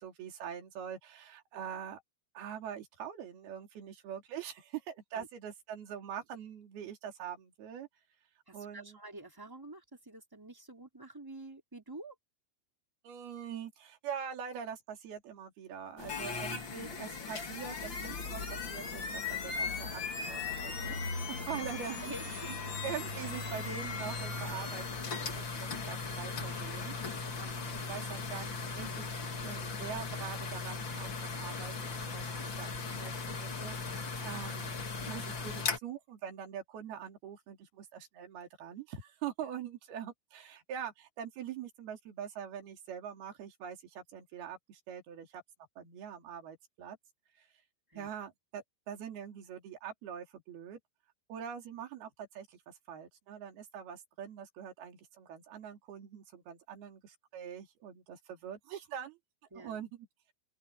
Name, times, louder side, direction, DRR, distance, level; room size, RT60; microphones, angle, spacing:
voice 1, 0.0-2.0 2.3-7.9 8.5-9.0 13.0-21.0 21.5-22.1 22.5-22.6 22.8-27.4 27.9-34.7 35.1-45.4 45.8-47.0 47.4-47.5 48.0-50.8 51.3-59.2 59.6-60.1, right 8 dB, 55° right, 4.8 m, -44 dB
voice 2, 8.5-12.1 22.0-22.3 27.4-27.9 47.9-48.1 59.5-59.8, right 2 dB, 5° right, 2.8 m, -48 dB
sound 1, 16.0-35.8, left 4 dB, 70° left, 1.1 m, -38 dB
open air
omnidirectional pair, 5.8 m